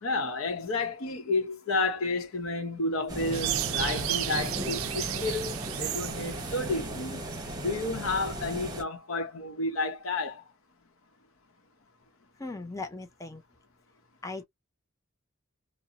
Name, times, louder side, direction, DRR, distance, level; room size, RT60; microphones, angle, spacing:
voice 1, 0.0-7.2 7.6-10.4, left 2 dB, 75° left, 0.8 m, -31 dB
sound 1, 3.1-8.8, right 1 dB, 20° right, 0.8 m, -36 dB
sound 2, 3.3-7.4, right 13 dB, 75° right, 0.4 m, -33 dB
voice 2, 12.4-13.4 14.2-14.4, left 3 dB, 15° left, 0.4 m, -38 dB
2.5 x 2.0 x 2.7 m
head